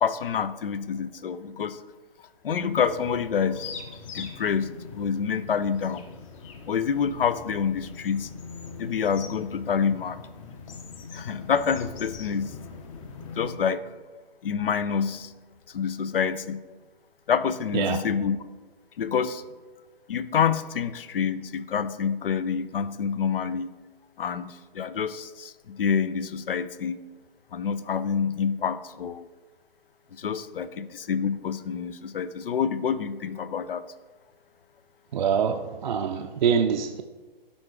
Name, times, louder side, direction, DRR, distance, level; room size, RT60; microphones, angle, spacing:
voice 1, 0.0-1.8 2.4-3.7 4.1-6.0 6.7-8.3 8.8-10.2 11.1-12.5 13.3-13.8 14.4-15.3 15.7-16.6 17.3-18.4 19.0-19.4 20.1-23.7 24.2-27.0 27.5-29.2 30.2-33.8, left 7 dB, 70° left, 15 dB, 0.6 m, -27 dB
sound 1, 2.7-13.5, left 5 dB, 35° left, 0.8 m, -42 dB
voice 2, 35.1-37.0, right 7 dB, 50° right, 4 dB, 0.5 m, -25 dB
11.5 x 3.8 x 4.8 m, 1.3 s
figure-of-eight pair, 130°, 29 cm